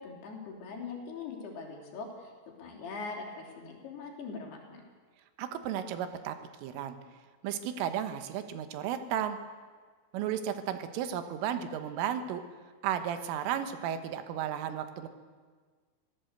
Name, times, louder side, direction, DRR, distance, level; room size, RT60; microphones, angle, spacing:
voice 1, 0.0-2.3 2.6-4.8, left 4 dB, 55° left, 1 dB, 4.8 m, -41 dB
voice 2, 5.4-6.4 6.6-7.0 7.4-9.4 10.1-12.4 12.8-15.1, right 9 dB, 85° right, 9 dB, 3.8 m, -34 dB
26.0 x 16.0 x 8.1 m, 1.5 s
omnidirectional pair, 5.7 m